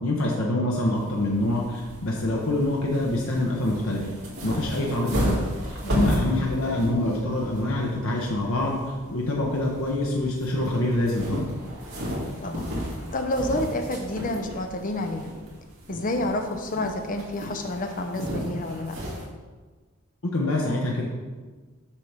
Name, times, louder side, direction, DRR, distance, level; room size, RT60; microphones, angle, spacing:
voice 1, 0.0-4.0 4.4-5.4 5.6-11.4 20.2-21.0, left 1 dB, 70° left, -2 dB, 1.1 m, -25 dB
sound 1, 0.7-19.2, equal, 65° right, 2.8 m, -34 dB
voice 2, 5.8-6.6 12.4-12.8 13.1-15.3 15.9-19.0, left 1 dB, 40° left, 4 dB, 0.7 m, -29 dB
7.5 x 5.9 x 5.1 m, 1.4 s
head